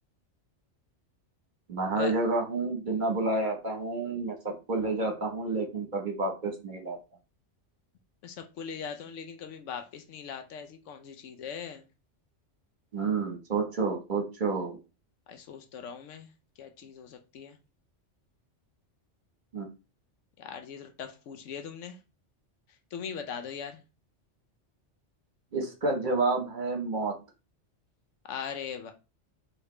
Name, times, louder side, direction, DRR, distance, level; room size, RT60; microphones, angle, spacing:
voice 1, 1.7-7.0 12.9-14.8 19.5-19.7 25.5-27.1, right 3 dB, 45° right, 2 dB, 1.2 m, -29 dB
voice 2, 8.2-11.8 15.3-16.3 16.6-17.6 20.4-22.0 22.9-23.8 28.3-28.9, left 7 dB, 85° left, 7 dB, 1.0 m, -40 dB
4.8 x 3.1 x 3.1 m, 0.29 s
omnidirectional pair, 1.2 m